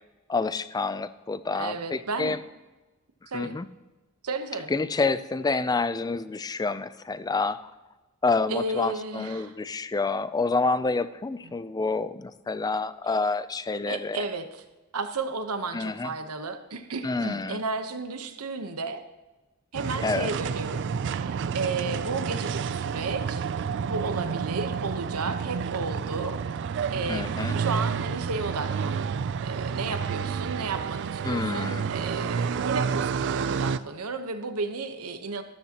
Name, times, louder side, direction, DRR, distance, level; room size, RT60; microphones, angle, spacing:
voice 1, 0.3-2.4 3.3-3.7 4.7-7.6 8.2-14.2 15.7-16.1 17.0-17.6 20.0-20.3 27.1-27.6 31.2-31.9, left 3 dB, 15° left, 15 dB, 0.4 m, -28 dB
voice 2, 1.5-2.4 3.3-3.6 4.2-4.7 8.5-9.5 11.4-11.5 13.9-14.6 14.9-19.0 19.7-23.4 23.8-29.0 29.4-35.4, right 3 dB, 85° right, 8 dB, 1.0 m, -33 dB
sound 1, 19.7-33.8, right 6 dB, 55° right, 0.4 m, -30 dB
13.0 x 13.0 x 2.9 m, 1.1 s
head